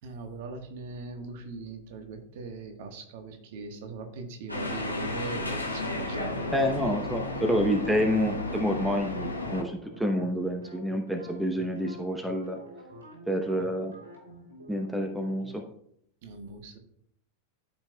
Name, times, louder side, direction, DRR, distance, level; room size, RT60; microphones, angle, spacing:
voice 1, 0.0-6.6 7.3-7.6 16.2-16.8, right 3 dB, 50° right, 6 dB, 1.3 m, -40 dB
sound 1, 4.5-9.6, left 2 dB, 85° left, 1.7 m, -33 dB
voice 2, 6.5-12.6 13.3-13.9 14.7-15.6, equal, 5° right, 4 dB, 0.8 m, -28 dB
sound 2, 9.3-15.6, right 1 dB, 70° right, 2.9 m, -48 dB
13.5 x 5.5 x 2.3 m, 0.69 s
figure-of-eight pair, 90°, 0 cm